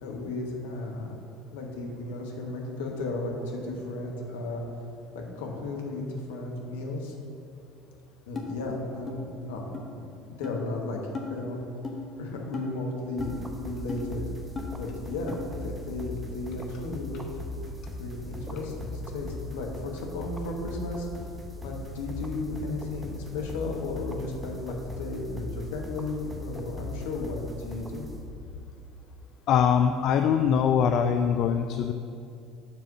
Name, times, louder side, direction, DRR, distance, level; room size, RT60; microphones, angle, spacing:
voice 1, 0.0-1.2 1.5-4.6 5.1-7.1 8.3-11.0 11.3-11.6 12.1-14.2 14.8-17.2 17.9-21.4 21.6-28.1, left 2 dB, 70° left, 0 dB, 1.2 m, -34 dB
sound 1, 8.3-8.5 9.1-9.2 9.7-9.8 10.4-10.6 11.1-11.3 11.8-12.0 12.5-12.7 13.2-13.4 13.9-14.0 14.5-14.7 15.3-15.4, left 5 dB, 30° left, 1.1 m, -35 dB
sound 2, 13.2-28.6, left 1 dB, 10° right, 0.8 m, -39 dB
voice 2, 29.5-31.9, left 7 dB, 50° left, 7 dB, 0.3 m, -23 dB
7.1 x 4.1 x 6.6 m, 2.5 s
figure-of-eight pair, 65°, 0 cm